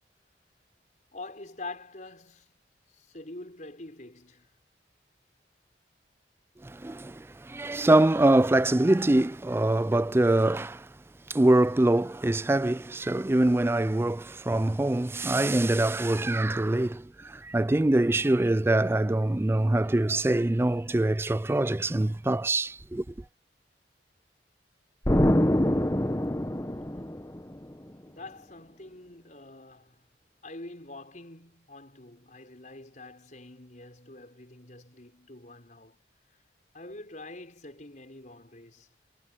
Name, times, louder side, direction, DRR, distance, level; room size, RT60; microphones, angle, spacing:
voice 1, 1.1-2.5 2.9-4.5 28.0-30.0 30.4-36.0 36.7-38.9, left 2 dB, 45° left, 5.0 m, -45 dB
voice 2, 6.6-10.9 11.3-23.0, right 1 dB, 15° right, 0.4 m, -24 dB
Explosion, 25.1-27.7, left 1 dB, 15° left, 1.1 m, -25 dB
head